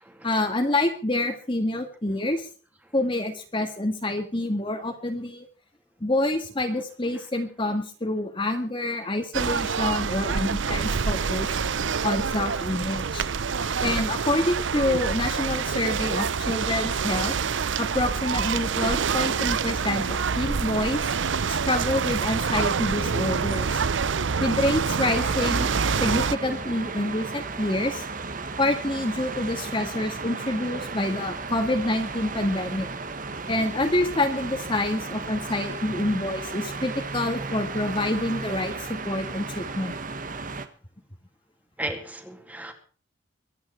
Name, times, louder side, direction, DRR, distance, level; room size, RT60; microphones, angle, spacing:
voice 1, 0.2-2.5 2.9-5.4 6.0-11.6 12.0-13.3 13.8-17.3 17.8-21.0 21.5-23.8 24.4-25.7 26.0-28.1 28.6-32.9 33.5-39.9, left 1 dB, 25° left, 4 dB, 1.8 m, -27 dB
sound 1, 9.3-26.3, right 5 dB, 75° right, 0.6 m, -26 dB
sound 2, 25.2-40.7, right 3 dB, 45° right, 1.4 m, -35 dB
voice 2, 41.8-42.7, right 1 dB, 10° right, 5 dB, 2.5 m, -36 dB
23.5 x 9.6 x 4.5 m, 0.41 s
head